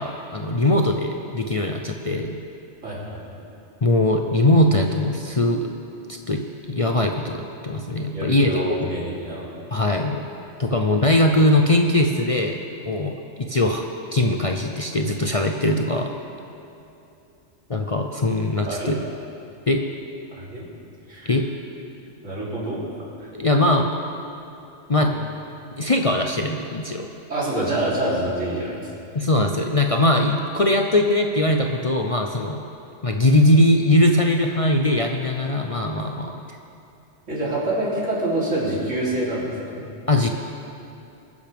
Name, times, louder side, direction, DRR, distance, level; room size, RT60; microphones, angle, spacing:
voice 1, 0.0-2.4 3.8-5.7 6.3-8.5 8.8-8.9 9.7-10.2 10.6-12.6 12.8-13.2 13.5-13.8 14.1-16.2 17.7-19.0 19.7-19.9 21.3-21.5 23.3-23.9 24.9-25.2 25.8-27.1 29.1-32.6 33.0-36.6 40.1-40.3, left 1 dB, 35° left, 3 dB, 0.6 m, -20 dB
voice 2, 2.8-3.2 8.1-9.5 18.7-18.9 20.3-20.7 21.1-21.3 22.2-22.8 23.2-23.3 27.3-28.9 37.3-39.9, right 1 dB, 85° right, -7 dB, 3.8 m, -26 dB
23.0 x 10.5 x 3.5 m, 2.8 s
omnidirectional pair, 1.2 m